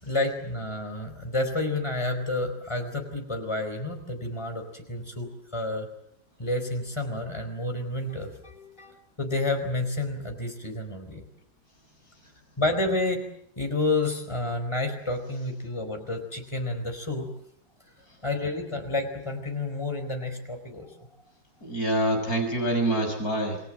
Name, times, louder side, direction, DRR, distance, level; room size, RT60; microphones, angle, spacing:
voice 1, 0.0-5.9 6.4-11.2 12.6-13.2 13.6-17.3 18.2-20.9, left 2 dB, 15° left, 5 dB, 4.5 m, -30 dB
voice 2, 21.6-23.6, right 1 dB, 45° left, 3 dB, 6.8 m, -26 dB
29.0 x 20.5 x 7.6 m, 0.70 s
omnidirectional pair, 2.2 m